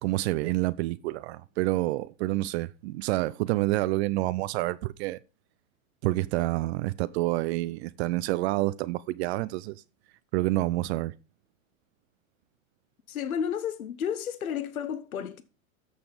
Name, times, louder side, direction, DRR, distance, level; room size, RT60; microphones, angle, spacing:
voice 1, 0.0-5.2 6.0-9.8 10.3-11.1, right 18 dB, 50° right, 0.6 m, -28 dB
voice 2, 13.1-15.4, left 8 dB, 85° left, 1.2 m, -32 dB
13.5 x 7.0 x 5.1 m
hypercardioid pair, 110°, 41 cm